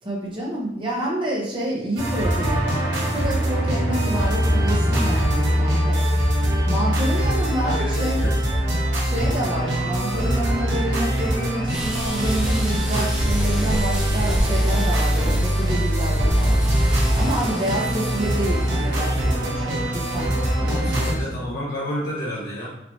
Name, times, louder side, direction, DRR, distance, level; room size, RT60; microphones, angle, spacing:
voice 1, 0.0-2.7 3.1-8.2 9.0-21.5, right 1 dB, 25° right, -4 dB, 1.0 m, -28 dB
sound 1, 2.0-21.1, equal, 65° right, 1.2 m, -22 dB
sound 2, 4.0-15.4, left 1 dB, 20° left, 1.1 m, -43 dB
voice 2, 7.6-8.4 20.7-22.7, equal, 50° left, -6 dB, 1.1 m, -31 dB
sound 3, 11.7-19.7, equal, 5° right, 0.5 m, -34 dB
4.2 x 3.0 x 2.8 m, 0.85 s
head